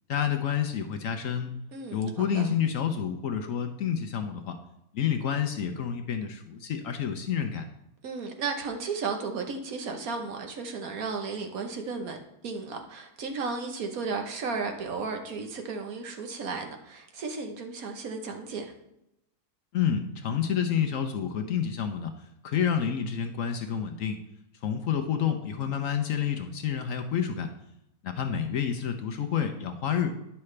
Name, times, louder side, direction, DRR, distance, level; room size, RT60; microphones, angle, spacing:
voice 1, 0.1-1.5 1.9-4.6 4.9-7.7 19.7-24.2 24.6-27.5 28.0-30.1, left 8 dB, 65° left, 6 dB, 0.9 m, -29 dB
voice 2, 1.7-2.5 8.0-12.2 12.4-18.7, right 4 dB, 65° right, 4 dB, 1.3 m, -34 dB
9.8 x 5.7 x 3.2 m, 0.85 s
omnidirectional pair, 1.7 m